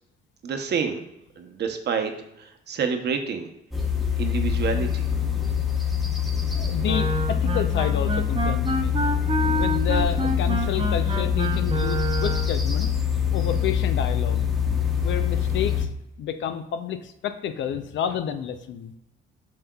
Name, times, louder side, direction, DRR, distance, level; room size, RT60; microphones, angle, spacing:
voice 1, 0.4-1.0 1.4-2.1 2.4-3.5 4.2-5.1, right 6 dB, 60° right, 6 dB, 0.8 m, -28 dB
sound 1, 3.7-15.9, left 8 dB, ahead, 1.0 m, -24 dB
voice 2, 5.2-5.5 5.9-6.0 6.5-9.0 9.5-12.9 13.3-14.4 15.0-15.9 16.2-18.9, left 8 dB, 70° left, 9 dB, 0.6 m, -30 dB
Wind instrument woodwind instrument, 6.8-12.6, right 2 dB, 30° right, 0.7 m, -28 dB
7.3 x 5.6 x 2.3 m, 0.85 s
cardioid pair, 90°, 20 cm